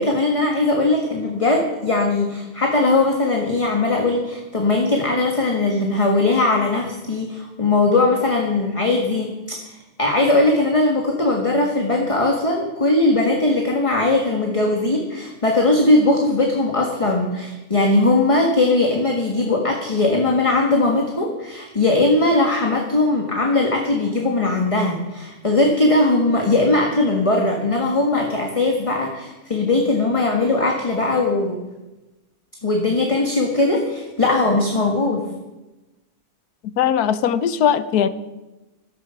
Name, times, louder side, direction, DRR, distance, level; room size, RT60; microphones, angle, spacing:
voice 1, 0.0-31.6 32.6-35.2, left 2 dB, 20° left, 1 dB, 1.5 m, -19 dB
voice 2, 36.8-38.1, left 9 dB, 80° left, 13 dB, 1.3 m, -19 dB
14.5 x 12.5 x 5.7 m, 1.1 s
omnidirectional pair, 1.6 m